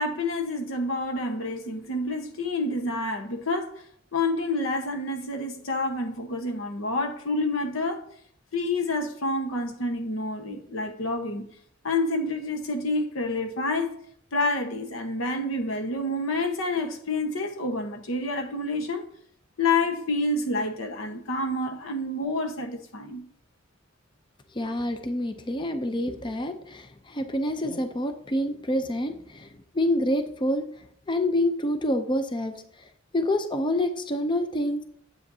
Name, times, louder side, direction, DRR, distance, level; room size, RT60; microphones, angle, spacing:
voice 1, 0.0-3.8 4.1-8.0 8.5-11.5 11.8-14.0 14.3-19.0 19.6-23.2, left 2 dB, 90° left, 1.1 m, -28 dB
voice 2, 24.6-29.5 29.7-30.7 31.1-32.5 33.1-34.8, left 1 dB, 25° left, 0.5 m, -27 dB
9.7 x 7.8 x 2.7 m
head